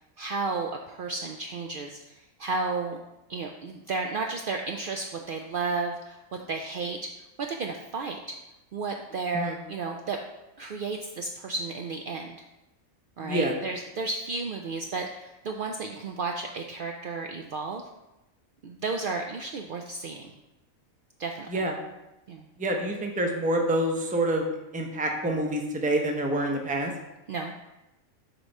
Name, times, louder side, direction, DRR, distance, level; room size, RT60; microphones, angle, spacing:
voice 1, 0.2-3.0 3.3-7.0 7.4-8.4 8.7-10.2 10.6-12.4 13.2-17.8 18.6-20.3 21.2-21.7 22.3-22.5 27.3-27.5, right 3 dB, 90° right, 3 dB, 0.4 m, -33 dB
voice 2, 13.2-13.5 21.5-21.8 22.6-24.5 24.7-26.9, right 1 dB, 10° right, 2 dB, 0.3 m, -27 dB
7.7 x 3.1 x 5.2 m, 0.96 s
omnidirectional pair, 1.5 m